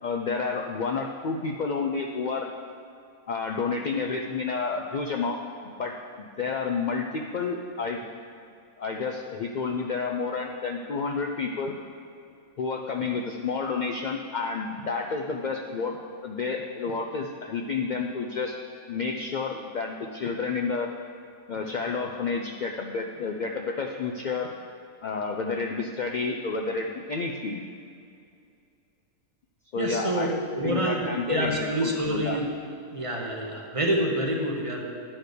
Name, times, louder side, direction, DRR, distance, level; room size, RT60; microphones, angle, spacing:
voice 1, 0.0-2.5 3.3-8.1 8.8-11.7 12.6-16.0 16.2-18.5 18.9-20.9 21.5-24.5 25.0-27.7 29.7-30.3 30.6-31.7 32.1-32.4, left 4 dB, 80° left, 1 dB, 0.4 m, -30 dB
voice 2, 29.8-30.3 30.5-32.5 32.9-34.8, right 1 dB, 30° right, 0 dB, 0.8 m, -27 dB
9.8 x 4.4 x 6.6 m, 2.5 s
omnidirectional pair, 1.4 m